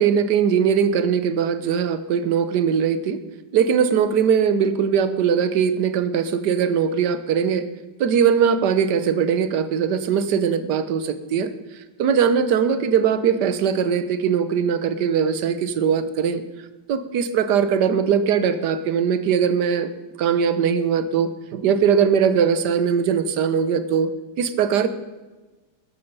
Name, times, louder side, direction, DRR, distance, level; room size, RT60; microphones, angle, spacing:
voice 1, 0.0-3.2 3.5-7.6 8.0-11.5 12.0-16.4 16.9-19.9 20.2-24.1 24.4-24.9, right 7 dB, 70° right, 12 dB, 1.4 m, -20 dB
13.0 x 11.0 x 5.4 m, 1.2 s
omnidirectional pair, 2.0 m